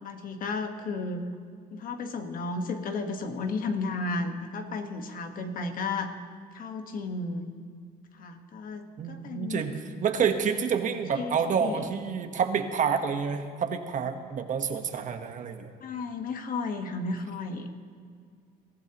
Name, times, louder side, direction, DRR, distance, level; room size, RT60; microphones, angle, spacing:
voice 1, 0.0-1.3 1.7-6.2 6.5-7.5 8.2-9.6 11.2-11.8 15.8-17.7, left 3 dB, 55° left, 6 dB, 1.4 m, -33 dB
voice 2, 9.0-15.7, right 6 dB, 50° right, 7 dB, 1.2 m, -28 dB
22.5 x 14.5 x 3.0 m, 2.2 s
cardioid pair, 110°, 17 cm